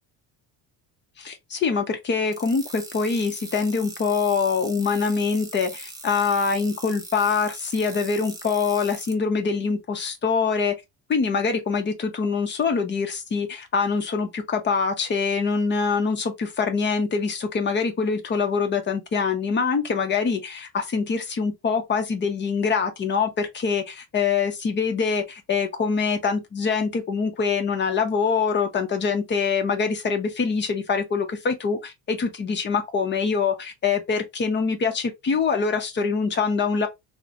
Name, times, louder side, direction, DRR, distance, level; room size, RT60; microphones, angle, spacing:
voice 1, 1.2-10.7 11.1-36.9, left 5 dB, 30° left, 0.8 m, -24 dB
sound 1, 2.3-9.1, right 2 dB, 10° right, 0.5 m, -40 dB
3.8 x 2.2 x 2.8 m
cardioid pair, 150°, 37 cm